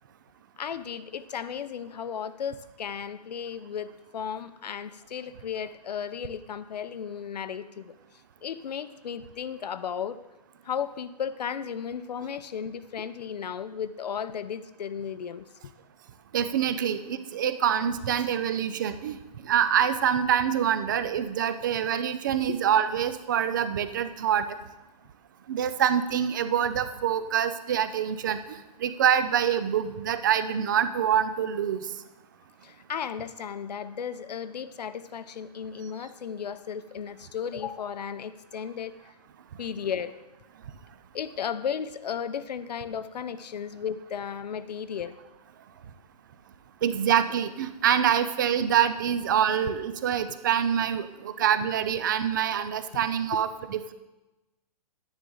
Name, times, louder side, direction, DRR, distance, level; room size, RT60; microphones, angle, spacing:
voice 1, 0.6-7.9 8.4-10.2 10.6-15.5 22.5-22.6 32.6-39.1 39.6-40.1 41.1-45.1, left 7 dB, 80° left, 13 dB, 0.8 m, -35 dB
voice 2, 16.3-19.2 19.4-24.5 25.5-28.4 28.8-31.8 46.8-53.9, right 9 dB, 30° right, 11 dB, 0.5 m, -25 dB
11.5 x 9.6 x 3.9 m, 1.0 s
hypercardioid pair, 170°, 21 cm